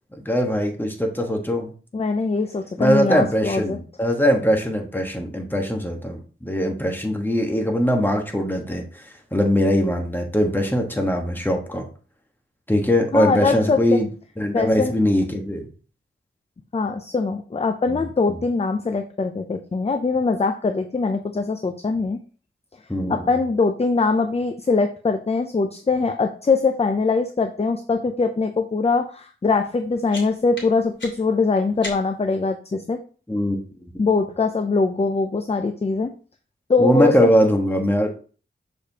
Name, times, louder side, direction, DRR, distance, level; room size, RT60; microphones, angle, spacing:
voice 1, 0.1-1.7 2.8-9.0 9.3-11.8 12.7-14.1 14.4-15.7 17.9-18.4 22.9-23.3 33.3-33.6 33.9-34.0 36.8-38.1, equal, 10° left, 2 dB, 1.3 m, -21 dB
voice 2, 1.9-3.8 13.1-14.0 14.5-14.9 16.7-22.2 23.1-33.0 34.0-36.1 36.7-37.3, left 4 dB, 30° left, 6 dB, 0.5 m, -22 dB
sound 1, 29.7-32.4, left 1 dB, 65° left, 2.7 m, -39 dB
6.6 x 5.1 x 2.8 m, 0.40 s
wide cardioid pair, 90°, 21 cm